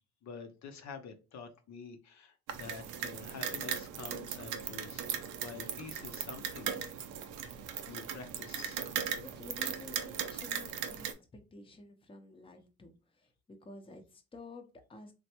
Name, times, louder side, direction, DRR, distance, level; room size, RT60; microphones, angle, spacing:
voice 1, 0.2-6.7 7.9-8.8, left 5 dB, 65° left, 0.6 m, -48 dB
sound 1, 2.5-11.1, right 8 dB, 90° right, 0.5 m, -38 dB
voice 2, 9.2-15.1, left 3 dB, 20° left, 0.6 m, -51 dB
3.2 x 2.2 x 2.9 m
cardioid pair, 90°, 30 cm